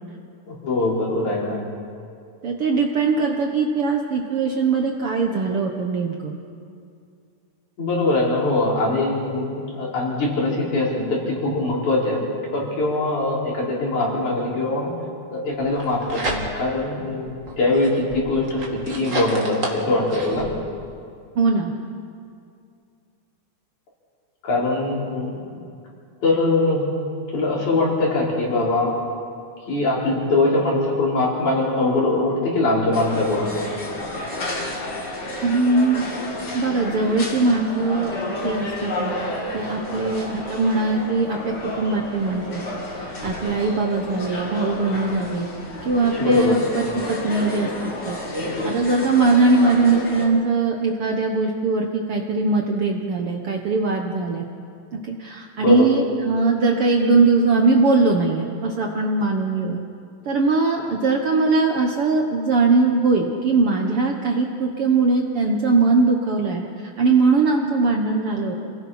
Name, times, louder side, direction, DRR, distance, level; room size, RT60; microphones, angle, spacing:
voice 1, 0.5-1.6 7.8-12.2 12.5-14.9 15.3-20.5 24.4-25.3 26.2-26.8 27.3-28.9 29.7-33.5 39.9-40.0 46.2-46.5 55.6-55.9 60.8-60.9, left 2 dB, 65° left, -5 dB, 5.8 m, -22 dB
voice 2, 2.4-6.3 21.4-21.7 35.4-36.0 36.5-39.1 39.5-42.6 43.0-45.5 45.9-48.2 48.6-54.4 54.9-59.8 60.3-66.6 67.0-68.6, right 3 dB, 55° right, 2 dB, 1.7 m, -21 dB
sound 1, 15.6-16.8 17.3-20.5, right 2 dB, 25° right, 2.1 m, -31 dB
sound 2, 32.9-50.3, left 2 dB, 35° left, 2.8 m, -31 dB
28.0 x 18.0 x 5.7 m, 2.4 s
omnidirectional pair, 3.8 m